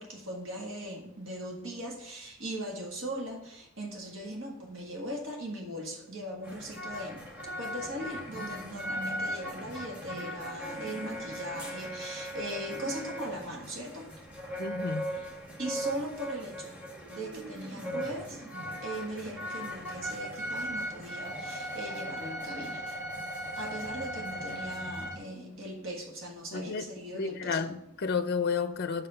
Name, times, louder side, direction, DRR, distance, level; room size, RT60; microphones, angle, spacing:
voice 1, 0.0-7.3 7.6-14.1 15.1-15.3 15.6-16.7 17.1-18.5 18.8-22.9 23.6-27.6, right 1 dB, 70° right, 0 dB, 1.5 m, -39 dB
sound 1, 6.4-25.2, equal, 5° right, 1.6 m, -38 dB
voice 2, 14.6-15.0 26.5-26.9 27.1-29.1, left 5 dB, 50° left, 10 dB, 0.4 m, -31 dB
5.8 x 5.6 x 6.7 m, 0.79 s
head